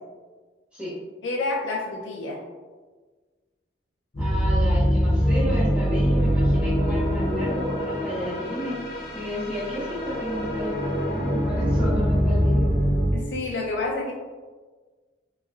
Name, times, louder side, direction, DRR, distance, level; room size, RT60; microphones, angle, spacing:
voice 1, 1.2-2.4 13.1-14.1, left 2 dB, 80° left, -2 dB, 0.5 m, -28 dB
sound 1, 4.1-13.1, equal, 55° left, 0.8 m, -23 dB
voice 2, 4.2-12.7, equal, 5° right, -10 dB, 1.2 m, -32 dB
3.1 x 3.0 x 2.3 m, 1.4 s
head